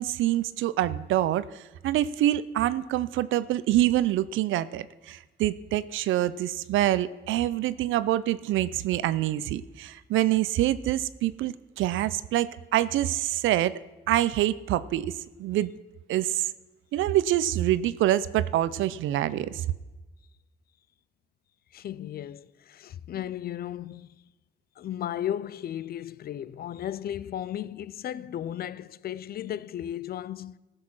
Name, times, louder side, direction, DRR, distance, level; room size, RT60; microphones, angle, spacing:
voice 1, 0.0-13.7 14.1-15.1 15.4-15.7 16.1-16.5 16.9-19.7, right 13 dB, 80° right, 0.5 m, -26 dB
voice 2, 21.7-24.2 24.8-30.6, left 11 dB, 50° left, 0.4 m, -35 dB
14.0 x 6.6 x 6.0 m
cardioid pair, 90°, 20 cm